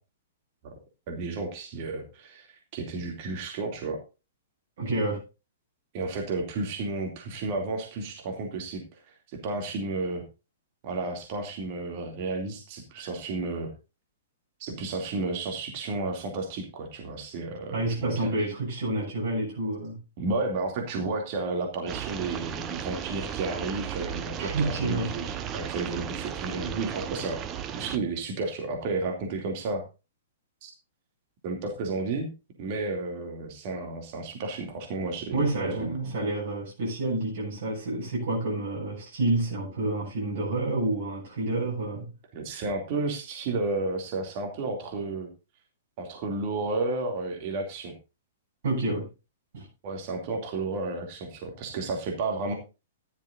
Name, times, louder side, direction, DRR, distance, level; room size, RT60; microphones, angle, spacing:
voice 1, 1.1-4.0 5.9-9.0 9.3-10.2 10.8-13.7 14.6-18.3 20.2-27.4 27.7-29.8 30.6-30.7 31.4-32.3 32.6-35.4 35.7-35.9 42.3-45.3 46.0-47.9 49.8-52.6, right 3 dB, 45° right, 2.6 m, -32 dB
voice 2, 4.8-5.2 17.7-20.0 24.4-25.1 35.3-42.0 48.6-49.1 49.5-49.7, right 2 dB, 60° right, 7.7 m, -29 dB
sound 1, 21.9-28.0, right 8 dB, 25° right, 1.1 m, -35 dB
14.5 x 11.5 x 2.6 m
figure-of-eight pair, 110°, 0 cm